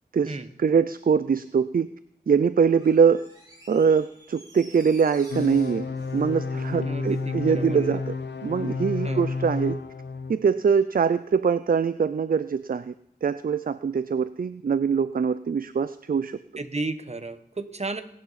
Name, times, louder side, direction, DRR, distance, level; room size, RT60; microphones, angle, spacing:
voice 1, 0.1-1.9 2.3-3.2 3.7-5.9 6.1-8.1 8.4-9.8 10.3-12.9 13.2-16.4, right 6 dB, 55° right, 14 dB, 0.5 m, -23 dB
Door, 2.7-7.3 7.6-7.7, right 1 dB, 20° right, 6.6 m, -52 dB
sound 1, 5.3-10.3, left 4 dB, 85° left, 0.9 m, -30 dB
voice 2, 6.8-8.0 9.0-9.2 16.6-18.0, right 3 dB, 40° right, 10 dB, 1.2 m, -33 dB
18.5 x 11.0 x 4.2 m, 0.73 s
wide cardioid pair, 60°, 18 cm